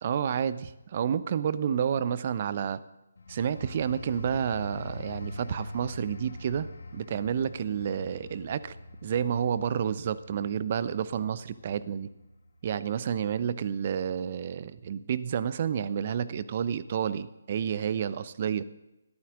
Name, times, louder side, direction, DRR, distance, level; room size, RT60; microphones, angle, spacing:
voice 1, 0.0-2.8 3.3-8.7 9.0-12.1 12.6-18.6, right 8 dB, 40° right, 16 dB, 0.8 m, -30 dB
sound 1, 3.2-13.5 13.9-14.2, left 1 dB, 60° left, 1.9 m, -44 dB
21.0 x 13.5 x 3.8 m, 0.95 s
figure-of-eight pair, 145°, 0 cm